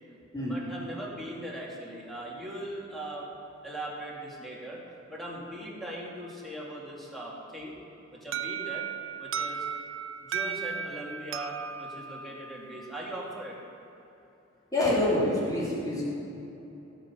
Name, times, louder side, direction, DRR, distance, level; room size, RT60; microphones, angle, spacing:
voice 1, 0.5-3.2 3.6-4.8 5.1-7.7 8.1-8.9 9.2-9.7 10.2-13.6, right 1 dB, ahead, -5 dB, 2.5 m, -39 dB
Alarm, 8.3-13.1, right 7 dB, 75° right, 0.5 m, -36 dB
voice 2, 14.7-16.1, left 1 dB, 20° left, -7 dB, 3.4 m, -26 dB
17.5 x 6.9 x 5.8 m, 2.9 s
head